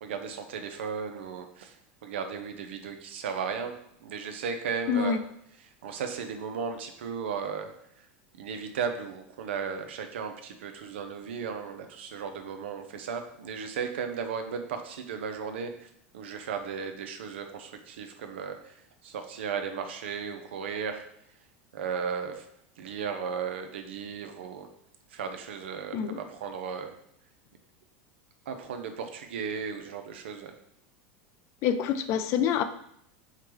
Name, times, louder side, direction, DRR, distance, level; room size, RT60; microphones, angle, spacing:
voice 1, 0.0-1.8 2.0-5.2 5.6-7.7 8.4-18.8 19.0-21.1 21.7-22.4 22.8-24.7 25.1-26.9 28.5-30.6, right 6 dB, 90° right, 6 dB, 0.5 m, -35 dB
voice 2, 4.9-5.2 25.9-26.2 31.6-32.6, left 8 dB, 50° left, 10 dB, 0.3 m, -26 dB
4.7 x 2.2 x 3.1 m, 0.74 s
supercardioid pair, 120°, 6 cm